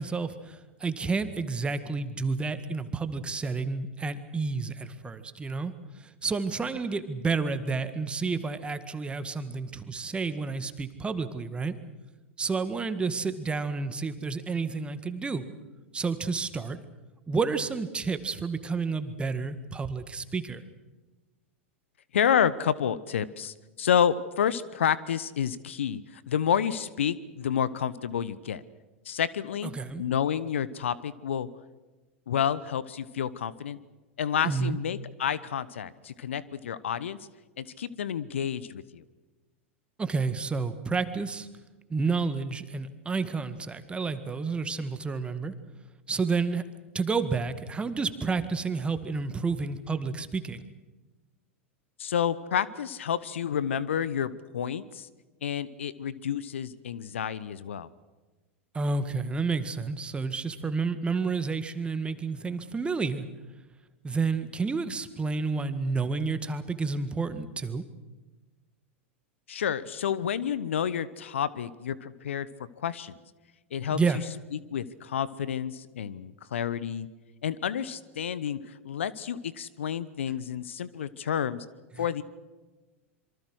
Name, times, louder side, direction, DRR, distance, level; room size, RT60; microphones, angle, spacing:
voice 1, 0.0-5.7 6.2-11.8 12.4-15.4 15.9-16.8 17.3-20.6 29.7-30.0 34.4-34.8 40.0-41.5 41.9-45.5 46.1-46.6 46.9-50.7 58.7-63.3 64.0-67.8 73.9-74.2 82.0-82.1, right 4 dB, 15° right, 11 dB, 1.8 m, -30 dB
voice 2, 22.1-28.6 29.1-29.7 30.0-31.5 32.3-33.8 34.2-37.2 37.6-39.0 52.0-55.1 55.4-57.9 69.5-72.5 72.8-73.2 73.7-74.0 74.5-77.1 77.4-81.6 82.0-82.2, left 8 dB, 70° left, 18 dB, 1.0 m, -29 dB
26.5 x 24.0 x 6.3 m, 1.2 s
figure-of-eight pair, 95°, 7 cm